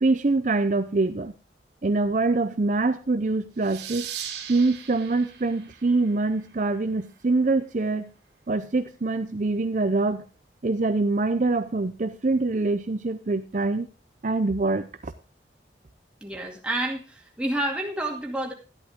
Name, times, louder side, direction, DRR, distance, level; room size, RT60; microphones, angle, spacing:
voice 1, 0.0-1.3 1.8-4.1 4.5-8.1 8.5-10.2 10.6-13.9 14.2-15.1, right 3 dB, 45° right, 9 dB, 0.6 m, -24 dB
sound 1, 3.6-6.9, right 9 dB, 80° right, 2.8 m, -39 dB
voice 2, 16.2-18.5, right 1 dB, 5° right, 0 dB, 2.3 m, -29 dB
13.0 x 11.0 x 3.6 m, 0.32 s
head